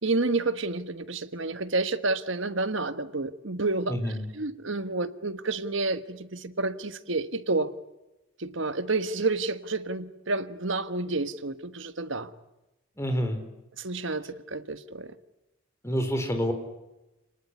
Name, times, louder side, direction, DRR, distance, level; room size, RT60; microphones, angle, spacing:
voice 1, 0.0-7.7 8.4-12.3 13.8-15.1, right 3 dB, 65° right, 11 dB, 1.4 m, -30 dB
voice 2, 3.9-4.2 13.0-13.4 15.8-16.5, equal, 15° left, 6 dB, 3.8 m, -27 dB
29.0 x 19.5 x 9.7 m, 1.0 s
head